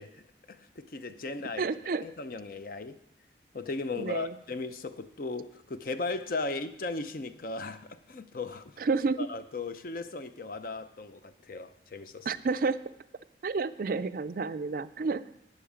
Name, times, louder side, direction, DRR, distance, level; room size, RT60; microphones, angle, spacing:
voice 1, 0.0-1.6 2.0-3.0 3.5-8.7 9.2-12.3, left 3 dB, 50° left, 10 dB, 0.6 m, -37 dB
voice 2, 1.6-2.0 4.0-4.3 8.8-9.3 12.3-12.8 13.4-15.3, right 4 dB, 50° right, 13 dB, 0.4 m, -30 dB
12.5 x 9.4 x 5.0 m, 0.77 s
head